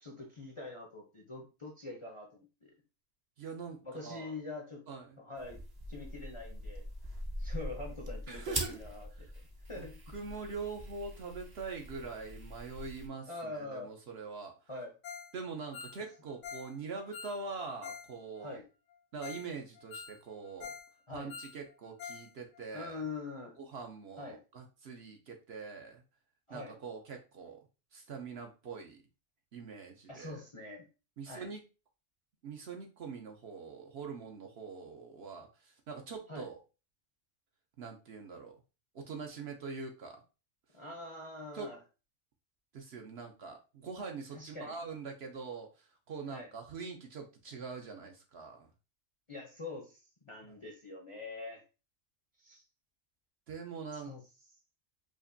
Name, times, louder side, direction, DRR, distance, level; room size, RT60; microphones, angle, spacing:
voice 1, 0.0-2.7 3.8-4.8 5.2-5.6 5.9-6.8 7.4-9.1 9.7-10.0 13.3-13.9 14.7-14.9 18.4-18.6 21.1-21.3 22.7-23.5 24.2-24.4 26.5-26.8 30.1-30.9 31.3-31.5 36.3-36.5 40.7-41.8 44.3-44.8 46.3-46.5 49.3-51.6 52.4-52.6 53.9-54.2, left 2 dB, 35° left, 0 dB, 0.6 m, -44 dB
voice 2, 3.4-4.4 4.9-5.2 8.3-8.8 9.1-9.3 9.8-9.9 10.1-14.5 15.3-18.6 19.1-20.7 21.1-23.0 23.6-26.0 26.5-27.7 27.9-29.0 29.5-30.4 31.2-31.6 32.4-36.6 37.8-38.6 38.9-40.2 41.5-41.7 42.7-48.7 50.5-50.6 53.5-54.1, right 4 dB, 60° right, 3 dB, 0.8 m, -43 dB
sound 1, 5.4-13.1, right 1 dB, 30° right, 0.5 m, -42 dB
Ringtone, 15.0-15.3 15.6-18.1 18.4-18.5 18.9-19.0 19.2-19.5 19.8-20.9 21.2-22.3 22.5-22.6 23.1-23.2, left 6 dB, 85° left, 1.0 m, -46 dB
4.9 x 2.5 x 2.5 m, 0.31 s
omnidirectional pair, 1.4 m